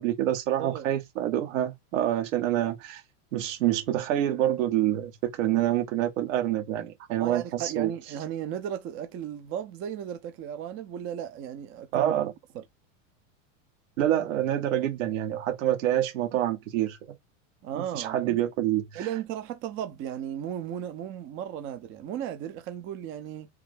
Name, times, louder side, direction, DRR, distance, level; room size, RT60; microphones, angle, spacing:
voice 1, 0.0-3.0 3.3-7.9 11.9-12.3 14.0-17.0 17.8-19.1, right 12 dB, 80° right, 1.2 m, -27 dB
voice 2, 0.6-0.9 7.2-12.1 12.5-12.6 17.6-18.4 18.9-23.5, right 10 dB, 35° right, 0.5 m, -35 dB
3.4 x 2.1 x 3.2 m
supercardioid pair, 130°, 39 cm